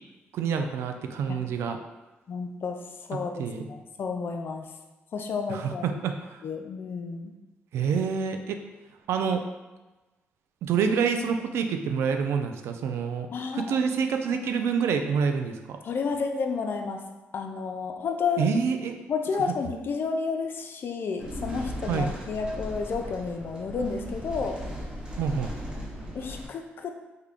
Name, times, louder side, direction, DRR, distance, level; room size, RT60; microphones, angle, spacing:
voice 1, 0.3-1.8 3.4-3.7 5.5-6.4 7.7-8.6 9.1-9.4 10.6-13.3 13.5-15.8 18.4-19.0 21.9-22.1 25.2-25.5, right 6 dB, 80° right, 6 dB, 0.3 m, -27 dB
voice 2, 2.3-4.7 5.1-6.0 6.4-7.3 13.3-13.7 15.8-17.0 17.3-18.5 19.1-24.6 26.1-27.0, left 5 dB, 55° left, 4 dB, 0.4 m, -31 dB
sound 1, 21.2-26.5, equal, 15° right, 0.9 m, -37 dB
3.6 x 2.2 x 3.5 m, 1.1 s
cardioid pair, 80°, 4 cm